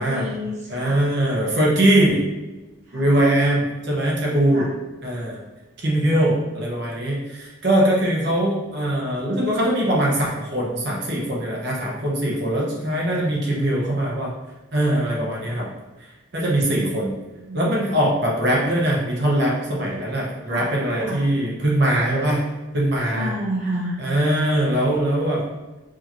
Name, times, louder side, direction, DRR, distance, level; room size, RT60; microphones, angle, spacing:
voice 1, 0.0-1.0 2.9-3.2 4.5-4.7 6.1-6.3 17.4-17.7 20.5-21.2 23.1-24.0, equal, 35° right, -8 dB, 0.8 m, -30 dB
voice 2, 0.7-2.3 2.9-4.7 5.0-5.4 5.8-14.3 14.7-15.7 16.0-17.1 17.5-22.4 22.7-23.3 24.0-25.5, right 1 dB, 55° right, -4 dB, 1.0 m, -21 dB
4.8 x 2.8 x 3.0 m, 1.1 s
head